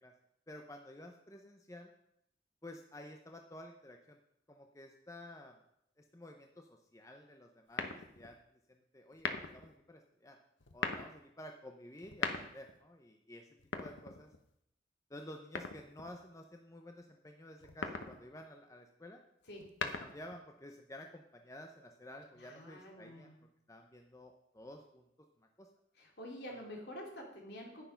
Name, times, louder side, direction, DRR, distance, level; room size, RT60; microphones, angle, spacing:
voice 1, 0.5-1.9 2.6-4.2 4.5-5.6 6.0-7.9 8.1-8.4 8.7-10.4 10.7-13.5 13.8-14.3 15.1-19.2 19.8-23.3 23.7-25.1 25.4-25.7 26.5-26.6, left 1 dB, 15° left, 3 dB, 0.7 m, -52 dB
sound 1, 7.7-8.3 9.1-9.7 10.6-11.1 12.0-12.8 13.6-14.5 15.5-16.2 17.6-18.2 19.5-20.4, left 4 dB, 90° left, 1.1 m, -39 dB
voice 2, 22.3-23.4 25.9-27.8, equal, 65° left, 0 dB, 3.0 m, -48 dB
10.0 x 9.1 x 5.7 m, 0.76 s
head